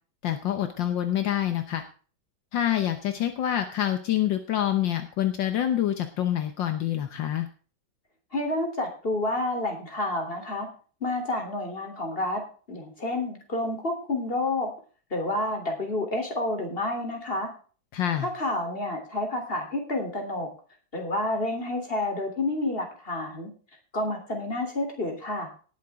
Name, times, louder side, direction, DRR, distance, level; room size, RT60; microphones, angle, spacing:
voice 1, 0.2-1.8 2.5-7.5 17.9-18.3, left 11 dB, 75° left, 8 dB, 1.7 m, -26 dB
voice 2, 8.3-10.7 11.0-12.4 12.7-14.7 15.1-17.5 18.2-20.5 20.9-23.5 23.9-25.5, left 2 dB, 30° left, 4 dB, 3.5 m, -29 dB
18.5 x 8.3 x 3.6 m, 0.39 s
omnidirectional pair, 2.1 m